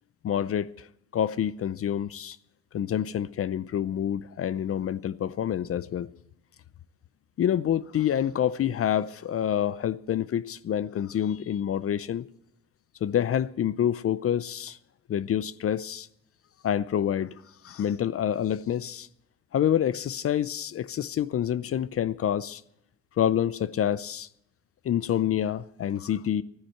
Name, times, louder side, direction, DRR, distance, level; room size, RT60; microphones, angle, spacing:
voice 1, 0.2-0.9 1.1-2.4 2.7-6.1 7.4-12.3 13.0-14.8 15.1-16.1 16.6-19.1 19.5-22.6 23.2-24.3 24.8-26.4, left 10 dB, 50° left, 0.6 m, -27 dB
13.5 x 10.0 x 7.8 m
cardioid pair, 90°, 30 cm